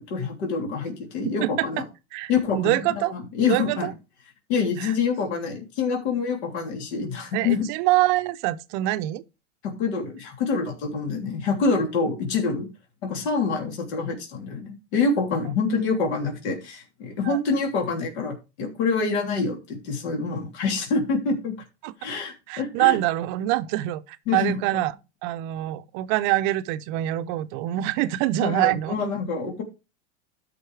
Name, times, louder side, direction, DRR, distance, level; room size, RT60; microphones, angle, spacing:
voice 1, 0.0-1.8 2.3-3.9 4.5-7.6 9.6-12.7 13.0-21.5 22.0-23.0 24.3-24.8 28.4-29.6, left 4 dB, 65° left, 3.2 m, -26 dB
voice 2, 2.1-3.1 3.5-3.9 4.8-4.9 7.3-9.2 17.2-17.4 21.8-21.9 22.5-24.9 25.2-28.9, right 16 dB, 45° right, 0.7 m, -25 dB
13.0 x 5.5 x 3.3 m
supercardioid pair, 130°, 35 cm